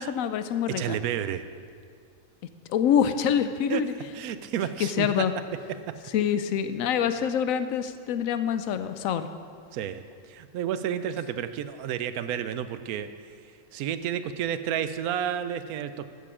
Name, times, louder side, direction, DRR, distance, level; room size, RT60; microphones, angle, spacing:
voice 1, 0.0-1.0 2.7-3.9 4.8-5.3 6.1-9.3, left 8 dB, 75° left, 10 dB, 1.0 m, -26 dB
voice 2, 0.7-1.4 3.7-3.8 4.1-5.1 5.9-6.0 9.7-10.0 10.3-13.1 13.7-16.1, right 9 dB, 90° right, 12 dB, 1.1 m, -31 dB
14.5 x 6.9 x 4.9 m, 2.2 s
omnidirectional pair, 1.5 m